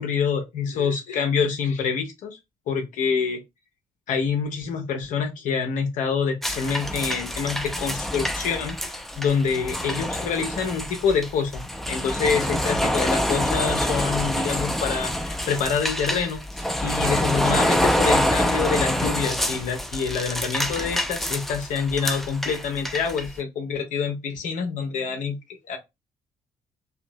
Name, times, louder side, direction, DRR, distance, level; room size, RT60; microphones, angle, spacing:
voice 1, 0.0-2.4 2.7-3.4 4.1-11.6 11.9-25.4 25.7-25.8, left 6 dB, 50° left, 0.5 m, -26 dB
sound 1, 6.4-23.3, equal, ahead, 0.5 m, -26 dB
2.7 x 2.2 x 2.6 m
figure-of-eight pair, 45°, 17 cm